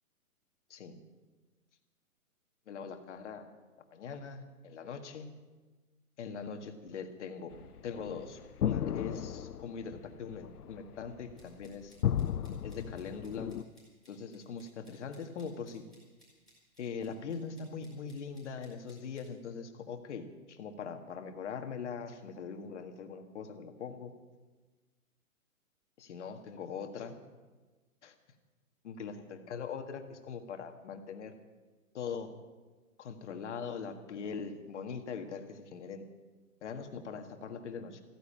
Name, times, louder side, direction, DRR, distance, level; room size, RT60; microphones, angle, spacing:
voice 1, 2.7-3.5 3.9-5.3 6.2-7.6 7.8-11.9 12.6-13.5 14.1-15.8 16.8-24.1 26.0-27.2 28.0-28.1 28.8-31.3 31.9-32.3 33.0-36.1 36.6-38.0, left 6 dB, 50° left, 6 dB, 1.8 m, -42 dB
sound 1, 7.5-13.6, left 10 dB, 85° left, 0.7 m, -35 dB
sound 2, 11.4-19.3, equal, ahead, 4.8 m, -65 dB
15.0 x 10.0 x 8.7 m, 1.3 s
hypercardioid pair, 160°, 44 cm